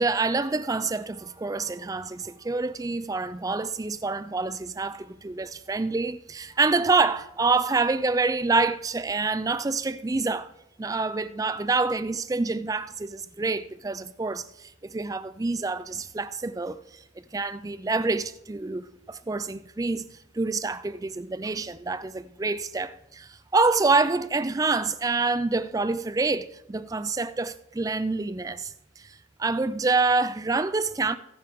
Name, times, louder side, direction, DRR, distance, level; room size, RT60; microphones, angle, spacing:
voice 1, 0.0-10.5 10.8-16.8 17.3-20.0 20.3-29.1 29.4-31.2, right 3 dB, 20° right, 0.4 m, -27 dB
19.5 x 7.6 x 3.6 m
head